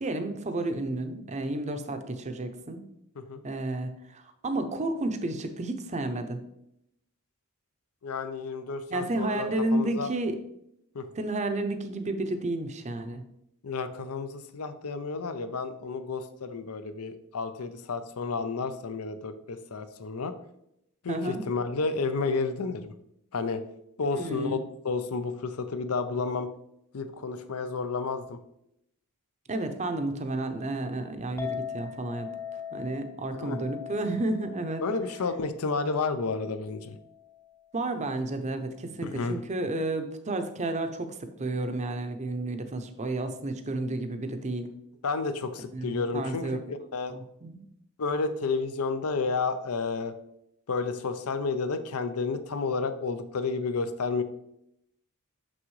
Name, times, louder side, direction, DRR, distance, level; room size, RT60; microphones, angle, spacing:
voice 1, 0.0-2.8 3.4-6.4 8.9-10.4 11.1-13.2 21.1-21.4 24.1-24.6 29.5-32.3 32.7-34.8 37.7-44.7 45.7-46.6 47.1-47.6, right 2 dB, 30° right, 8 dB, 0.6 m, -31 dB
voice 2, 8.0-10.1 10.9-11.1 13.6-20.3 21.0-22.9 23.3-23.6 24.0-24.6 24.8-26.5 26.9-28.4 33.3-33.6 34.8-36.9 39.0-39.4 45.0-47.1 48.0-50.1 50.7-54.2, left 4 dB, 75° left, 11 dB, 0.6 m, -31 dB
Chink clink, 31.4-37.7, left 8 dB, 15° left, 0.6 m, -41 dB
6.1 x 6.0 x 3.2 m, 0.79 s
head